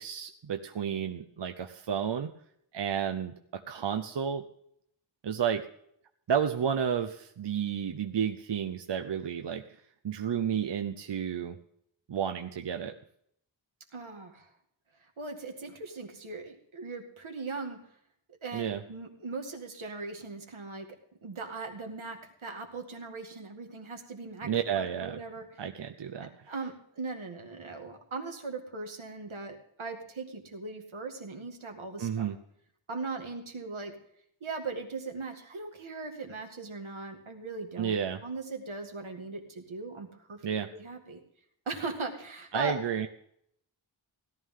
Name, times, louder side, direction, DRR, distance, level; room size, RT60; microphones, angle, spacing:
voice 1, 0.0-2.3 2.7-4.4 5.2-5.7 6.3-9.6 10.0-11.6 12.1-12.9 18.5-18.8 24.4-25.2 25.6-26.5 32.0-32.4 37.8-38.2 40.4-40.7 42.5-43.1, right 8 dB, 65° right, 6 dB, 0.8 m, -31 dB
voice 2, 13.9-14.5 15.2-17.8 18.4-20.9 21.2-25.5 26.2-32.3 32.9-34.0 34.4-37.9 38.2-40.4 40.7-41.2 41.7-42.8, right 3 dB, 90° right, 4 dB, 2.1 m, -39 dB
17.0 x 12.5 x 3.8 m, 0.69 s
wide cardioid pair, 100°, 47 cm